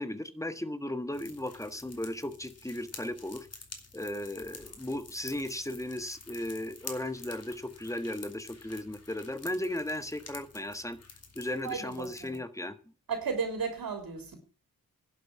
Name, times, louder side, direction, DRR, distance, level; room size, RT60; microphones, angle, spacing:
voice 1, 0.0-3.5 3.9-11.0 11.3-12.7, left 1 dB, 10° left, 1.5 m, -36 dB
sound 1, 1.1-12.4, left 4 dB, 45° left, 3.2 m, -49 dB
voice 2, 11.6-12.4 13.1-14.4, right 5 dB, 70° right, 3.5 m, -34 dB
11.0 x 7.4 x 8.4 m
wide cardioid pair, 105°, 36 cm